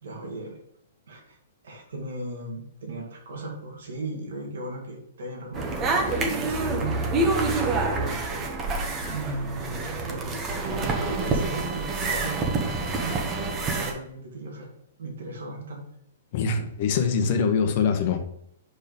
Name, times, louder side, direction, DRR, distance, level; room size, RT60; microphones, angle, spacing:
voice 1, 0.0-0.6 1.1-1.4 1.6-8.5 8.9-14.7 15.0-15.8, right 2 dB, 75° right, 0 dB, 2.3 m, -37 dB
sound 1, 5.5-13.9, right 3 dB, 25° right, 1.3 m, -27 dB
voice 2, 16.3-18.2, left 5 dB, 50° left, 5 dB, 1.1 m, -23 dB
5.1 x 4.5 x 5.3 m, 0.72 s
hypercardioid pair, 140°, 0 cm